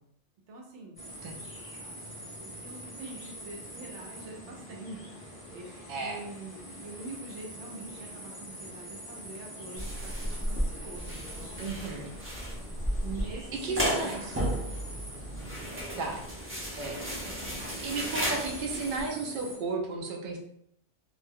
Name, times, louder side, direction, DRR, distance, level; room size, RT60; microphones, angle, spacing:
voice 1, 0.5-1.0 1.5-1.9 2.4-11.7 13.0-14.5 15.3-15.9, right 3 dB, 75° right, 0 dB, 1.0 m, -45 dB
sound 1, 1.0-19.6, equal, 15° left, 0.7 m, -45 dB
voice 2, 5.9-6.2 11.6-12.1 13.6-14.4 16.0-16.2 16.8-17.4 17.8-20.4, right 4 dB, 60° right, 0 dB, 0.6 m, -34 dB
sound 2, 9.8-19.0, equal, 15° right, 0.4 m, -34 dB
2.5 x 2.1 x 3.4 m, 0.73 s
omnidirectional pair, 1.2 m